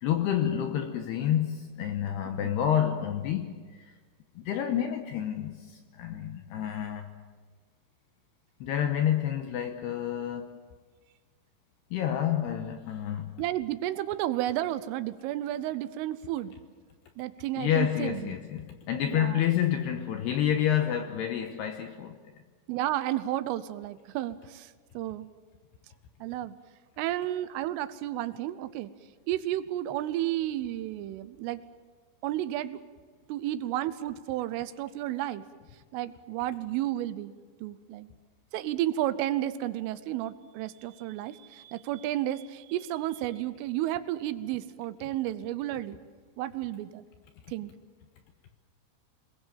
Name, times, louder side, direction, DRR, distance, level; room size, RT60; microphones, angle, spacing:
voice 1, 0.0-4.0 4.4-7.1 8.6-10.6 11.9-13.4 17.6-22.2, left 10 dB, 75° left, 2.5 m, -29 dB
voice 2, 13.4-16.5 17.2-18.3 19.1-19.4 22.7-25.3 26.2-26.6 27.0-28.9 29.3-31.6 32.2-32.8 33.3-35.4 35.9-37.3 37.6-38.1 38.5-46.0 46.4-47.0 47.5-47.7, right 13 dB, 80° right, 3.3 m, -32 dB
26.5 x 20.5 x 7.5 m
omnidirectional pair, 5.8 m